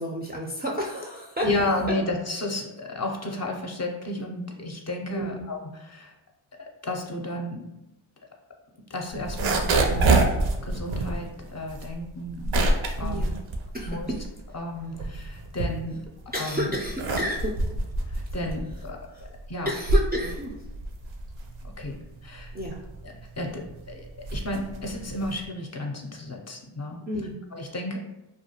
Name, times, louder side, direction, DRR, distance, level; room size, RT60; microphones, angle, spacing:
voice 1, 0.0-1.5 5.2-5.4 13.0-13.4 13.7-14.2 16.3-17.6 19.1-19.2 19.6-20.6 22.5-22.8 27.1-27.4, equal, 25° right, -3 dB, 0.3 m, -31 dB
voice 2, 1.4-6.1 6.6-7.7 8.9-10.3 10.6-13.3 13.9-14.1 14.5-16.0 16.4-16.8 18.1-19.7 21.6-22.5 23.0-27.0 27.5-28.0, left 1 dB, 35° left, 1 dB, 0.5 m, -33 dB
sound 1, 9.2-14.4 14.8-16.2 16.7-25.5, right 2 dB, 75° right, 0.5 m, -26 dB
2.3 x 2.2 x 2.8 m, 0.94 s
cardioid pair, 55°, 49 cm